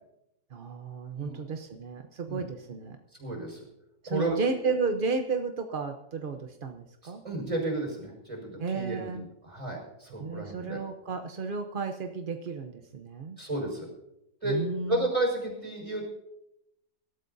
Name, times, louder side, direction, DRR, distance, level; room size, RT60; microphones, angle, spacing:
voice 1, 0.5-3.0 4.0-7.2 8.6-9.2 10.2-13.4 14.4-15.1, right 4 dB, 50° right, 5 dB, 0.6 m, -33 dB
voice 2, 3.2-3.6 4.1-4.4 7.0-9.1 9.4-10.8 13.4-13.9 14.4-14.6 14.9-16.0, right 1 dB, 15° right, 0 dB, 5.4 m, -32 dB
24.5 x 13.0 x 2.7 m, 0.85 s
omnidirectional pair, 2.0 m